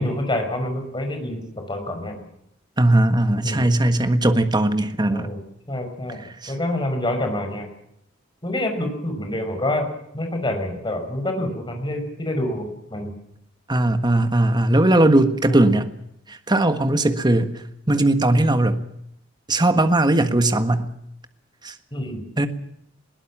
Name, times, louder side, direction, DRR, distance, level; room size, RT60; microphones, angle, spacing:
voice 1, 0.0-1.4 1.7-2.2 3.4-3.6 5.1-5.4 5.7-7.7 8.4-9.9 10.1-13.1 15.5-15.7 21.9-22.2, left 1 dB, 25° left, 5 dB, 5.7 m, -27 dB
voice 2, 2.8-5.3 6.4-6.5 13.7-15.9 16.3-18.8 19.5-20.9 21.6-21.7 22.4-22.5, right 1 dB, 20° right, 9 dB, 1.5 m, -19 dB
21.5 x 18.5 x 7.3 m, 0.77 s
head